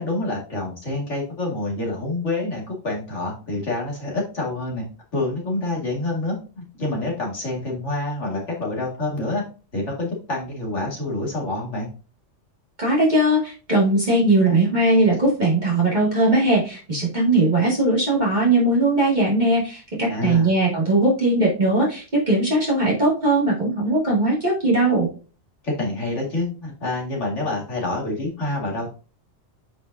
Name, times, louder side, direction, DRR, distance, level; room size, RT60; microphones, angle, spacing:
voice 1, 0.0-4.9 5.1-9.4 9.7-11.9 20.1-20.5 25.6-28.9, left 2 dB, 80° left, -2 dB, 2.6 m, -27 dB
voice 2, 12.8-25.1, right 2 dB, 40° right, -5 dB, 2.5 m, -19 dB
9.0 x 5.1 x 2.7 m, 0.35 s
omnidirectional pair, 1.2 m